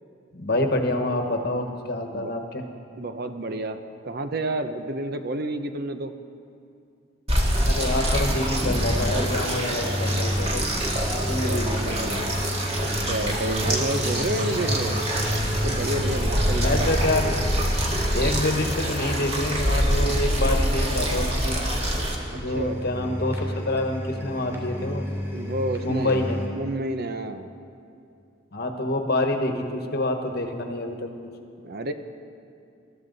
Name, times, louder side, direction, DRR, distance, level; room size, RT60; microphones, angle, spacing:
voice 1, 0.3-2.6 7.6-10.6 11.3-12.0 13.8-14.0 16.5-17.4 18.1-21.6 22.3-25.1 25.8-26.4 28.5-31.1, left 1 dB, 50° left, 4 dB, 1.3 m, -27 dB
voice 2, 3.0-3.8 4.0-6.1 11.2-12.4 13.0-15.0 15.6-17.0 22.3-22.8 25.3-26.3 26.6-27.5 31.6-31.9, right 1 dB, 50° right, 8 dB, 0.7 m, -30 dB
sound 1, 7.3-22.2, equal, 30° right, 1.8 m, -26 dB
sound 2, 7.8-26.5, equal, 15° right, 2.9 m, -31 dB
22.5 x 13.5 x 4.0 m, 2.5 s
head